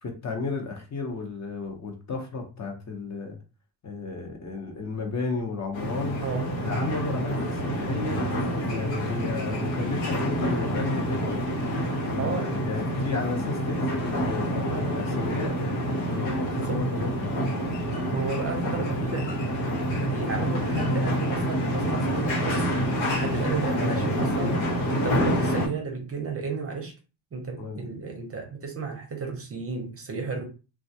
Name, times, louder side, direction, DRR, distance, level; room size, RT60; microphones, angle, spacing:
voice 1, 0.0-3.4 3.8-6.2 6.6-8.2 8.7-11.5 12.1-15.5 16.1-17.4 23.7-24.1 24.4-24.7 27.6-27.9, left 3 dB, 35° left, 0.8 m, -33 dB
sound 1, 5.7-25.7, equal, 90° left, 1.1 m, -27 dB
voice 2, 12.2-12.6 16.5-16.8 18.1-19.5 19.9-22.7 23.1-24.6 24.9-26.9 27.3-30.4, right 4 dB, 30° right, 0.6 m, -33 dB
2.3 x 2.3 x 2.7 m
cardioid pair, 95°, 47 cm